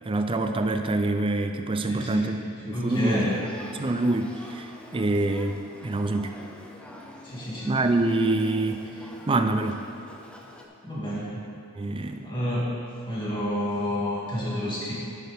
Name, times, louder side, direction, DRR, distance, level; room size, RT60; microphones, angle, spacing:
voice 1, 0.0-3.4 3.8-6.3 7.7-8.8 9.3-9.9 11.8-12.2, right 2 dB, 25° right, 7 dB, 0.5 m, -26 dB
voice 2, 1.9-2.3 2.6-3.4 7.2-7.7 10.8-11.4 11.8-12.7 13.1-14.9, equal, 20° left, -7 dB, 2.5 m, -29 dB
Male speech man speaking / Child speech kid speaking / Conversation, 2.9-10.7, left 1 dB, 5° left, 0.7 m, -46 dB
10.5 x 8.5 x 3.6 m, 2.6 s
head